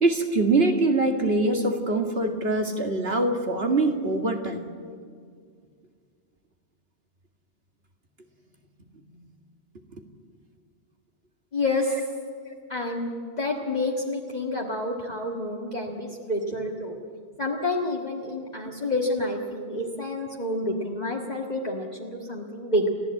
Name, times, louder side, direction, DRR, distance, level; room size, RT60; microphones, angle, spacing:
voice 1, 0.0-4.6 9.1-9.2 19.2-19.3, right 2 dB, 55° right, 3 dB, 2.3 m, -23 dB
voice 2, 11.5-12.0 12.7-17.0 17.4-22.9, left 2 dB, 35° left, -1 dB, 1.8 m, -29 dB
30.0 x 14.0 x 8.5 m, 2.1 s
omnidirectional pair, 1.2 m